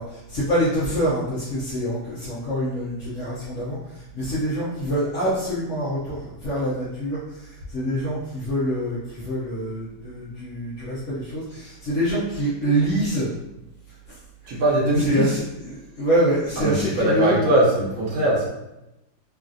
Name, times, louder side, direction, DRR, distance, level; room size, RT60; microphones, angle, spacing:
voice 1, 0.0-13.3 14.1-14.2 14.4-17.5, equal, 60° left, -9 dB, 0.8 m, -26 dB
voice 2, 14.5-15.3 16.6-18.5, right 1 dB, 60° right, -4 dB, 1.0 m, -21 dB
3.2 x 2.4 x 2.5 m, 0.93 s
omnidirectional pair, 1.9 m